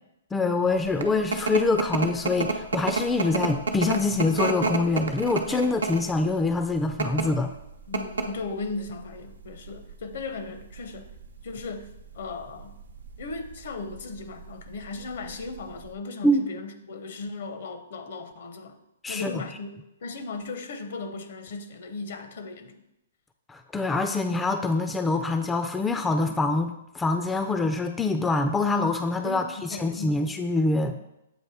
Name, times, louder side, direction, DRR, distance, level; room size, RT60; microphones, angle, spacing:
voice 1, 0.3-7.5 16.2-16.5 19.0-19.4 23.5-30.9, left 3 dB, 10° left, 7 dB, 0.3 m, -25 dB
sound 1, 0.7-15.9, right 3 dB, 85° right, 0.6 m, -31 dB
voice 2, 7.9-11.1 11.4-12.7 13.2-18.8 19.1-19.7 20.0-22.8 29.2-30.2, left 3 dB, 65° left, 9 dB, 0.7 m, -37 dB
7.7 x 2.6 x 4.9 m, 0.87 s
hypercardioid pair, 135°, 0 cm